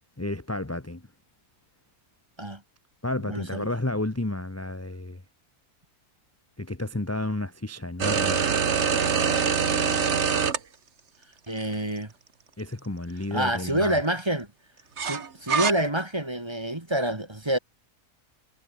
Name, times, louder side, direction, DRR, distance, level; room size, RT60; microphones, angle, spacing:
voice 1, 0.2-1.0 3.0-5.2 6.6-8.4 12.6-14.0, left 2 dB, 10° left, 1.2 m, -31 dB
voice 2, 3.2-3.7 11.5-12.1 13.3-14.5 15.0-17.6, right 1 dB, 15° right, 1.9 m, -27 dB
sound 1, 8.0-10.6 11.6-11.7 15.0-15.7, right 6 dB, 45° right, 1.6 m, -24 dB
omnidirectional pair, 1.7 m